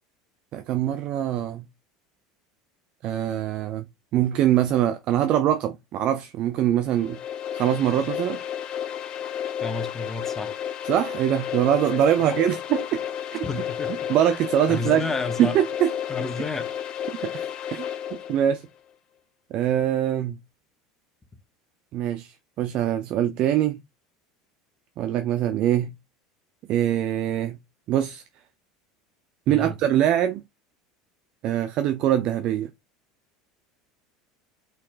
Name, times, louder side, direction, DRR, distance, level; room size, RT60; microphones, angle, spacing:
voice 1, 0.5-1.7 3.0-3.8 4.1-7.2 7.5-8.4 10.9-13.0 13.3-13.4 14.1-15.0 15.4-15.9 17.2-17.9 18.3-18.6 19.5-20.4 21.9-23.8 25.0-25.9 26.7-27.6 27.9-28.2 29.5-30.4 31.4-32.7, right 11 dB, 45° right, 0.4 m, -23 dB
sound 1, 6.9-18.5, left 9 dB, 40° left, 0.7 m, -32 dB
voice 2, 9.6-10.6 12.3-12.4 13.4-13.9 14.7-15.6 16.1-16.7 29.5-29.8, left 3 dB, 15° left, 1.0 m, -31 dB
4.2 x 4.0 x 2.5 m
figure-of-eight pair, 75°, 2 cm